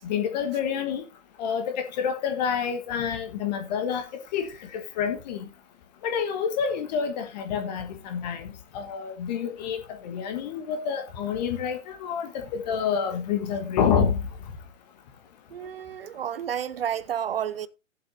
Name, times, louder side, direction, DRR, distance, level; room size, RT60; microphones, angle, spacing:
voice 1, 0.0-1.0 1.4-4.0 4.3-5.4 6.0-14.2, left 7 dB, 30° left, 1.3 m, -28 dB
voice 2, 15.5-17.7, right 9 dB, 45° right, 0.6 m, -31 dB
18.0 x 7.7 x 2.7 m
figure-of-eight pair, 125°, 40 cm